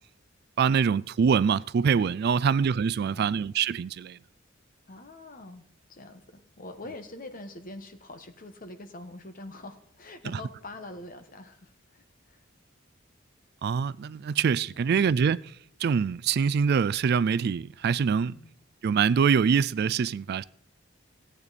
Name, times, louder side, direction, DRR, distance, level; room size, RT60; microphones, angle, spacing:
voice 1, 0.6-4.2 13.6-15.4 15.8-18.3 18.8-20.4, right 6 dB, 55° right, 0.3 m, -24 dB
voice 2, 4.9-5.6 5.9-12.4 14.7-15.4 18.2-18.5, left 2 dB, 45° left, 1.3 m, -45 dB
16.5 x 8.7 x 4.1 m
head